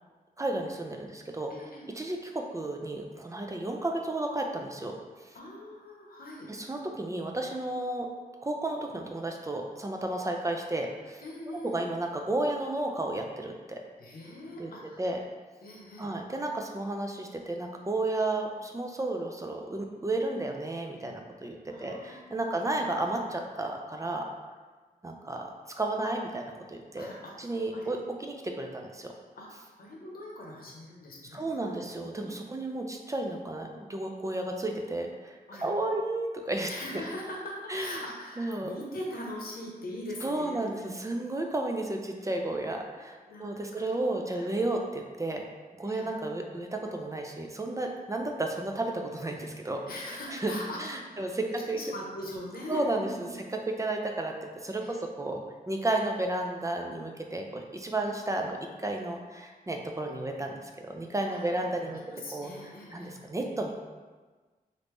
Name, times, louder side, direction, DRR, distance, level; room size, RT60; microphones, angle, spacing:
voice 1, 0.4-1.5 1.9-4.9 5.2-5.4 6.5-8.1 8.4-11.2 11.6-13.8 14.6-14.7 15.0-15.2 16.0-24.3 25.0-25.5 25.8-27.1 27.4-29.1 31.3-36.7 37.7-38.0 38.4-38.7 40.2-45.5 45.7-49.8 50.3-50.5 50.8-51.8 52.7-54.4 54.6-62.0 62.3-62.5 62.9-63.7, right 2 dB, 20° right, 2 dB, 0.3 m, -32 dB
voice 2, 1.5-1.9 5.3-6.5 11.2-11.8 14.0-15.0 15.6-16.1 21.7-22.9 27.0-27.9 29.4-31.8 32.1-32.5 35.5-35.7 36.7-40.9 43.3-43.8 44.1-44.7 45.8-46.1 49.8-50.8 51.1-51.3 51.7-53.4 54.8-55.0 58.0-58.1 61.3-61.5 61.8-63.1, left 1 dB, 80° left, -2 dB, 0.7 m, -42 dB
3.1 x 2.6 x 3.4 m, 1.4 s
wide cardioid pair, 100°, 15 cm